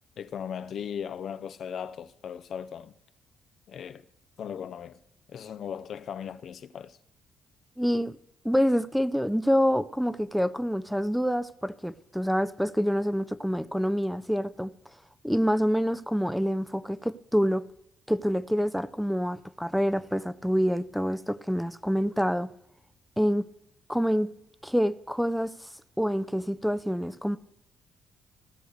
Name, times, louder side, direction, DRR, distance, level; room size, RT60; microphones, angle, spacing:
voice 1, 0.2-2.9 3.7-4.0 4.4-5.0 5.3-7.0, left 8 dB, 60° left, 0.5 m, -37 dB
voice 2, 7.8-8.2 8.4-14.7 15.2-17.6 18.1-22.5 23.2-23.5 23.9-24.3 24.6-25.5 26.0-27.4, equal, ahead, 0.5 m, -26 dB
16.0 x 6.4 x 6.5 m
cardioid pair, 90°, 0 cm